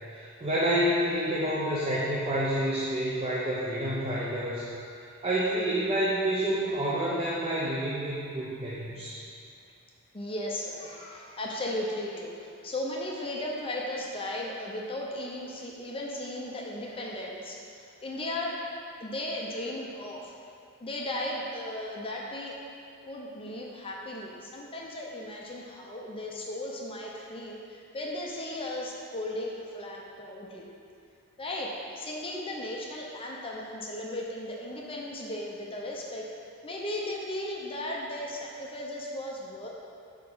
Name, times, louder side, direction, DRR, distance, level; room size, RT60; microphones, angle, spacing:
voice 1, 0.1-4.7 5.0-9.2, right 1 dB, 25° right, -9 dB, 0.8 m, -28 dB
voice 2, 10.1-20.3 20.8-22.6 23.0-30.7 31.4-36.3 36.6-39.7, left 1 dB, 25° left, -2 dB, 0.6 m, -36 dB
4.8 x 4.8 x 5.4 m, 2.4 s
head